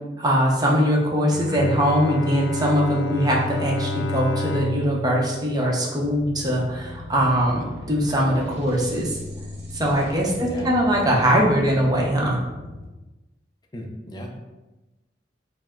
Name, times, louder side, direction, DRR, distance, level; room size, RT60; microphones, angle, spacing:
voice 1, 0.2-9.2 9.7-12.4, equal, 20° right, -2 dB, 0.7 m, -21 dB
Bowed string instrument, 1.2-6.5, left 2 dB, 90° left, 0.3 m, -31 dB
sound 1, 6.0-12.8, left 2 dB, 65° right, 0.8 m, -38 dB
voice 2, 10.4-10.7 13.7-14.3, equal, 25° left, 1 dB, 0.5 m, -35 dB
4.6 x 2.0 x 3.6 m, 1.1 s
head